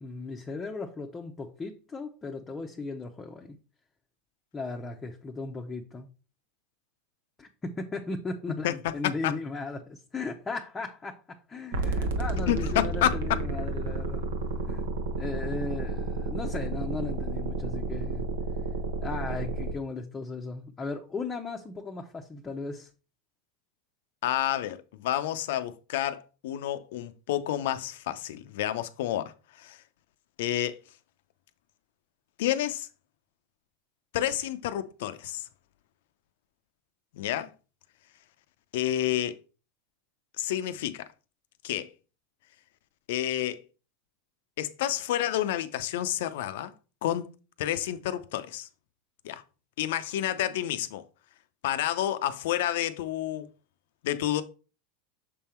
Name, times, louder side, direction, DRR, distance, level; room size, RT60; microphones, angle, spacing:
voice 1, 0.0-3.6 4.5-6.1 7.4-14.3 14.7-14.9 15.1-18.3 19.0-22.9, left 3 dB, 20° left, 0.8 m, -37 dB
sound 1, 11.7-19.7, right 3 dB, 80° right, 1.1 m, -31 dB
voice 2, 12.5-13.2 24.2-29.8 30.4-30.8 32.4-32.9 34.1-35.4 37.1-37.5 38.7-39.3 40.4-41.1 41.6-41.9 43.1-43.6 44.6-46.7 47.0-47.3 47.6-48.7 49.2-49.4 49.8-51.0 51.6-53.5 54.0-54.4, left 12 dB, 75° left, 0.6 m, -29 dB
6.8 x 3.7 x 4.3 m
supercardioid pair, 115°, 0 cm